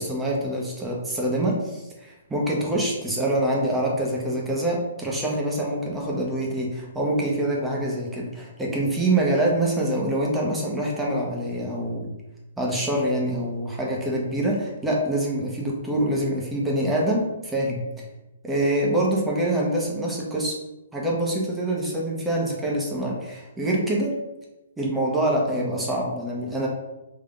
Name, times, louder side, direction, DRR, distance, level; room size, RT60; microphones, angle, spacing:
voice 1, 0.0-12.1 12.6-17.8 18.4-20.6 20.9-24.2 24.8-26.7, right 1 dB, 10° right, -3 dB, 1.0 m, -25 dB
3.8 x 3.2 x 3.7 m, 0.99 s
hypercardioid pair, 130°, 0 cm